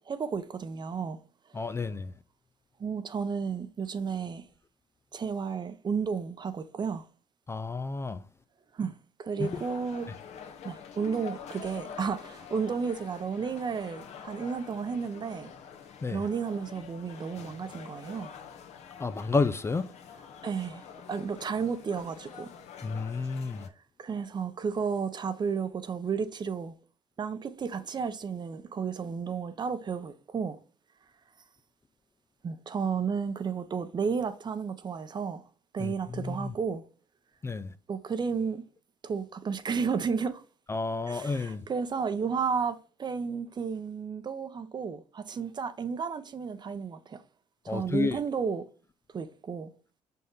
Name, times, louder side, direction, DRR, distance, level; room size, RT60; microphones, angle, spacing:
voice 1, 0.1-1.2 1.5-1.6 2.8-4.5 5.1-7.1 8.7-10.1 10.6-15.5 16.1-18.3 20.4-20.8 21.1-22.5 24.0-26.7 27.2-30.6 32.4-35.4 35.7-36.8 37.9-38.6 39.0-40.4 41.1-47.2 47.6-48.7 49.1-49.7, right 6 dB, 40° right, 0.8 m, -32 dB
voice 2, 1.5-2.1 7.5-8.2 9.4-9.5 16.0-16.2 19.0-19.9 22.8-23.7 35.8-36.5 37.4-37.7 40.7-41.6 47.7-48.2, left 3 dB, 20° left, 0.4 m, -31 dB
sound 1, 9.4-23.7, left 7 dB, 65° left, 1.2 m, -46 dB
5.5 x 5.3 x 3.8 m
supercardioid pair, 85°, 12 cm